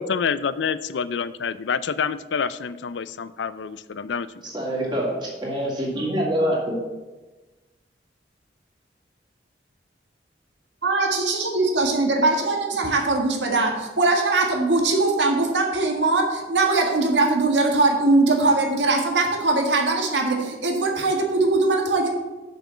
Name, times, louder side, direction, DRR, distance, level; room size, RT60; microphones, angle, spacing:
voice 1, 0.0-4.3, left 6 dB, 90° left, 15 dB, 0.4 m, -27 dB
voice 2, 4.4-6.7, equal, 25° right, -3 dB, 2.5 m, -25 dB
voice 3, 10.8-22.1, right 3 dB, 90° right, 1 dB, 1.7 m, -21 dB
6.9 x 6.0 x 7.4 m, 1.2 s
head